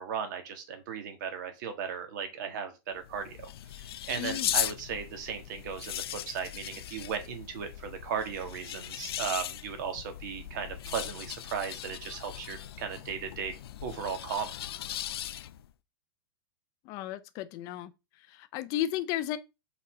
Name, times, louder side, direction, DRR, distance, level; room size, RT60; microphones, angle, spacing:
voice 1, 0.0-13.5 13.8-14.6, right 7 dB, 50° right, 1.8 m, -36 dB
sound 1, 3.0-15.7, left 11 dB, 70° left, 0.6 m, -38 dB
voice 2, 4.2-4.5 16.8-17.9 18.3-19.4, left 13 dB, 30° left, 0.6 m, -34 dB
5.5 x 4.1 x 5.0 m
supercardioid pair, 165°, 13 cm